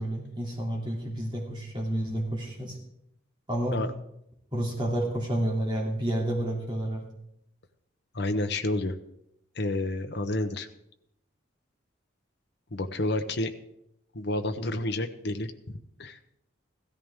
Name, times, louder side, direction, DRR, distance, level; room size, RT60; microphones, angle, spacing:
voice 1, 0.0-2.8 3.5-3.8 4.5-7.1, right 1 dB, 25° right, -2 dB, 2.8 m, -30 dB
voice 2, 8.1-8.9 9.6-10.7 12.7-13.5 14.1-15.5 16.0-16.2, left 2 dB, 55° left, 6 dB, 0.9 m, -29 dB
16.0 x 13.5 x 3.6 m, 0.76 s
head